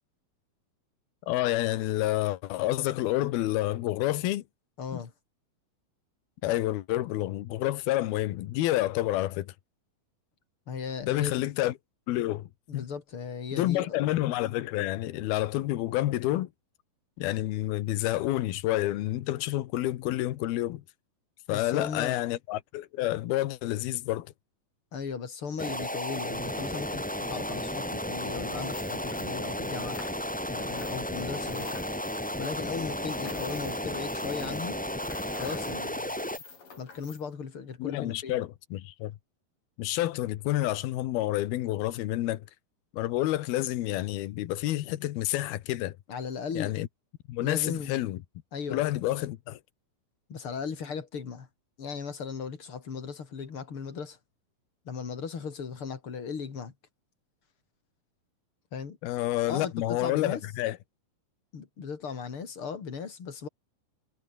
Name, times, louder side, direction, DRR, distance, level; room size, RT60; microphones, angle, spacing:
voice 1, 1.3-4.4 6.4-9.5 11.0-11.7 12.1-12.8 13.5-16.5 17.2-20.8 21.5-24.3 37.8-39.2 39.8-42.5 42.9-46.0 46.5-46.9 47.3-48.2 48.7-49.6 59.0-60.8, left 15 dB, 85° left, 3.1 m, -29 dB
voice 2, 4.8-5.1 10.7-11.4 12.7-14.0 21.5-22.2 24.9-30.0 30.5-31.8 32.4-34.8 35.4-36.2 36.8-38.4 46.1-46.8 47.4-48.0 48.5-48.8 50.3-51.5 51.8-54.2 54.8-56.7 58.7-59.0 59.5-60.4 61.5-63.5, left 6 dB, 40° left, 3.2 m, -37 dB
sound 1, 25.6-36.4, left 1 dB, 5° left, 0.7 m, -33 dB
sound 2, 28.5-30.4 30.7-37.2, left 5 dB, 65° left, 7.5 m, -49 dB
omnidirectional pair, 4.3 m